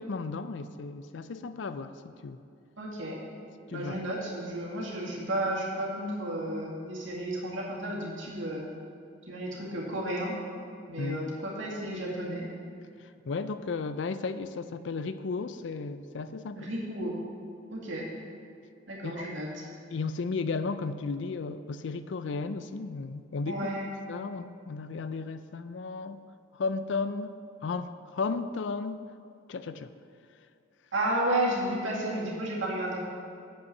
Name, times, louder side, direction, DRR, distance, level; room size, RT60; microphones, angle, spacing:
voice 1, 0.0-2.4 3.7-4.0 11.0-11.2 13.2-16.7 19.0-19.3 19.9-23.7 24.1-26.2 26.6-29.0 29.5-29.9, left 4 dB, 70° left, 12 dB, 0.4 m, -34 dB
voice 2, 2.8-3.2 3.7-8.7 9.3-10.3 10.9-12.5 16.6-17.2 17.7-18.1 18.9-19.7 23.5-23.9 30.9-33.0, right 1 dB, 80° right, -4 dB, 2.1 m, -32 dB
7.9 x 5.7 x 6.6 m, 2.5 s
head